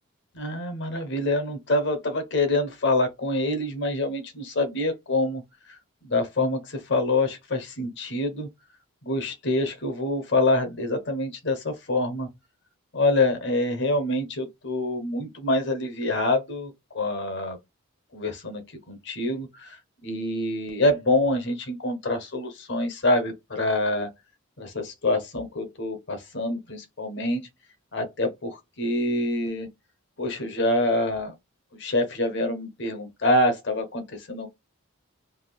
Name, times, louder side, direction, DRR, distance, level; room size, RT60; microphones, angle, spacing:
voice 1, 0.3-5.4 5.7-5.8 6.0-8.5 9.0-12.3 12.9-17.6 18.1-24.1 24.6-27.5 27.9-29.7 30.2-31.3 31.8-34.5, left 2 dB, 55° left, 0.9 m, -26 dB
3.5 x 2.5 x 2.2 m
head